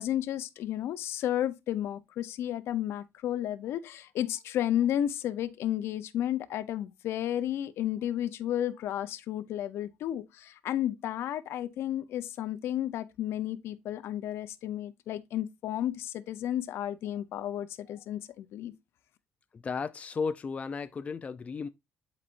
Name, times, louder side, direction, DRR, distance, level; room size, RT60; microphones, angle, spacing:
voice 1, 0.0-18.7, left 11 dB, 70° left, 0.7 m, -32 dB
voice 2, 19.5-21.7, left 5 dB, 30° left, 0.5 m, -34 dB
11.0 x 4.2 x 2.6 m
cardioid pair, 105°, 4 cm